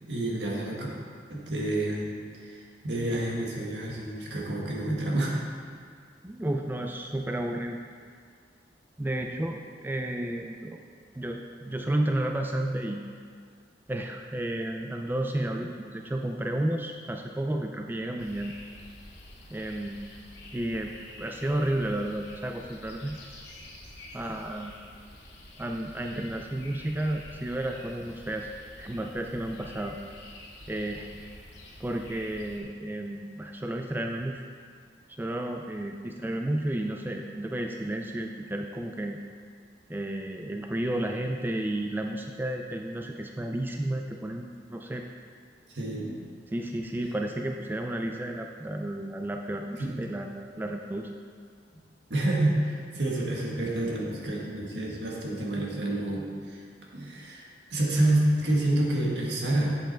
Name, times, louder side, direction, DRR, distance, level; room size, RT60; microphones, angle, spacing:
voice 1, 0.0-0.9 1.3-5.4 45.7-46.2 49.8-49.9 52.1-56.6 56.9-59.8, right 1 dB, 70° right, -3 dB, 1.7 m, -28 dB
voice 2, 6.2-7.8 9.0-10.8 11.2-13.0 13.9-18.5 19.5-20.2 20.5-23.2 24.1-24.7 25.6-28.5 28.8-30.0 30.7-31.2 31.8-34.4 35.1-39.2 39.9-45.0 46.5-51.1, right 1 dB, 10° right, 3 dB, 0.4 m, -32 dB
sound 1, 18.2-32.6, left 1 dB, 75° left, 2.0 m, -48 dB
8.1 x 7.2 x 4.4 m, 2.1 s
head